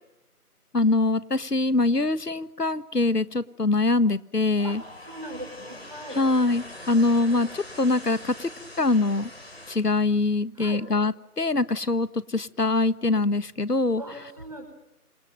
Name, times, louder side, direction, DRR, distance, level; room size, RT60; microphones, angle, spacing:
voice 1, 0.7-4.8 6.1-8.5 8.8-9.3 9.7-14.0, left 3 dB, 80° left, 16 dB, 1.6 m, -23 dB
sound 1, 4.6-9.8, left 1 dB, 40° left, 6.0 m, -43 dB
voice 2, 4.6-6.2 10.6-10.8 14.0-14.6, right 1 dB, 25° right, 4 dB, 5.5 m, -39 dB
29.0 x 27.0 x 7.7 m, 0.85 s
figure-of-eight pair, 175°, 46 cm